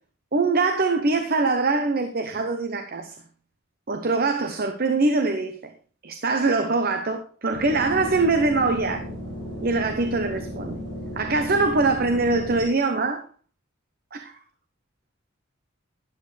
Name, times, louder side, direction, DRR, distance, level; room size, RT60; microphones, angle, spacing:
voice 1, 0.3-3.2 3.9-5.6 6.0-9.0 9.6-10.8 11.2-13.3 14.1-14.4, right 3 dB, 45° right, 0.8 m, -23 dB
sound 1, 7.5-12.6, left 1 dB, 65° right, 6.0 m, -35 dB
12.0 x 10.5 x 3.3 m
head